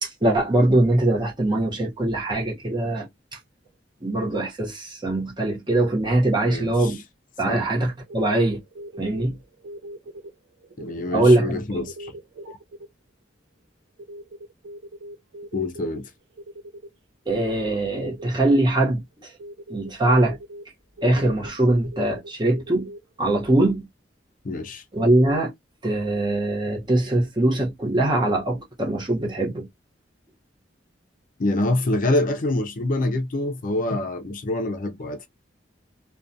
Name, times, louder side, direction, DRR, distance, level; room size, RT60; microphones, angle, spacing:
voice 1, 0.0-3.4 4.0-7.0 7.4-8.6 9.0-9.4 11.1-11.8 17.3-19.3 19.7-20.4 21.0-22.9 23.2-23.9 24.9-25.5 25.8-29.7, right 1 dB, 25° right, 0.9 m, -22 dB
voice 2, 6.5-6.9 7.4-7.6 10.8-12.1 15.5-16.1 24.4-24.8 31.4-35.2, left 2 dB, 45° left, 0.5 m, -26 dB
sound 1, 7.9-9.4 9.6-10.3 10.6-11.3 11.9-12.9 14.0-16.0 16.4-16.9 17.3-18.4 19.4-20.7 21.0-21.5 21.8-23.0, right 1 dB, 70° right, 0.5 m, -41 dB
2.3 x 2.2 x 2.6 m
head